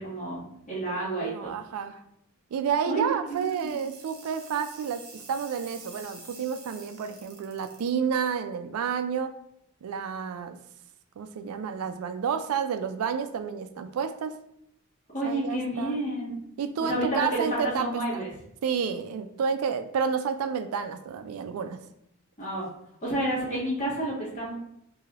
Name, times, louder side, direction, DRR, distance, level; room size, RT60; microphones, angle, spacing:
voice 1, 0.0-1.3 2.9-3.7 15.1-16.3 16.8-18.3 22.4-22.7 23.0-24.5, right 1 dB, 35° left, -6 dB, 1.3 m, -30 dB
voice 2, 1.2-2.0 2.5-9.4 9.8-10.6 11.2-14.4 15.2-16.1 16.6-18.3 18.6-21.8, right 6 dB, 85° right, 9 dB, 0.3 m, -30 dB
sound 1, 3.3-7.9, right 3 dB, 45° right, 0.8 m, -48 dB
3.1 x 2.7 x 2.4 m, 0.77 s
head